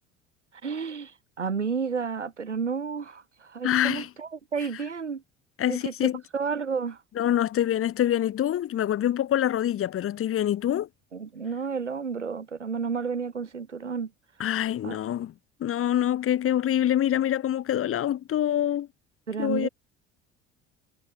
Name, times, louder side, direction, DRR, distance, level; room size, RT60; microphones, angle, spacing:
voice 1, 0.6-5.2 5.7-7.0 11.1-14.1 14.8-15.0 19.3-19.7, right 5 dB, 85° right, 3.2 m, -31 dB
voice 2, 3.6-4.1 5.6-6.2 7.2-10.9 14.4-15.3 15.6-18.9 19.4-19.7, left 11 dB, 40° left, 1.7 m, -25 dB
figure-of-eight pair, 60°, 34 cm